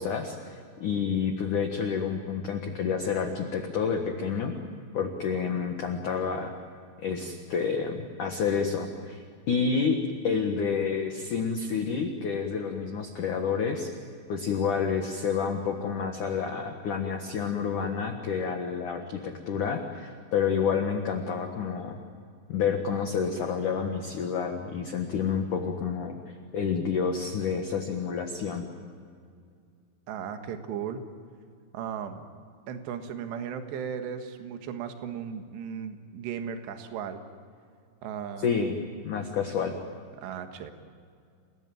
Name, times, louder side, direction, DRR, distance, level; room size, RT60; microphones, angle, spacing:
voice 1, 0.0-4.5 4.9-6.5 7.0-13.9 14.3-22.0 22.5-28.7 38.4-38.8 39.0-39.7, left 6 dB, 60° left, 3 dB, 2.2 m, -29 dB
voice 2, 30.1-31.0 31.7-32.3 32.7-37.2 38.0-38.5 40.2-40.7, right 7 dB, 65° right, 6 dB, 3.5 m, -36 dB
29.5 x 18.5 x 9.1 m, 2.3 s
omnidirectional pair, 5.7 m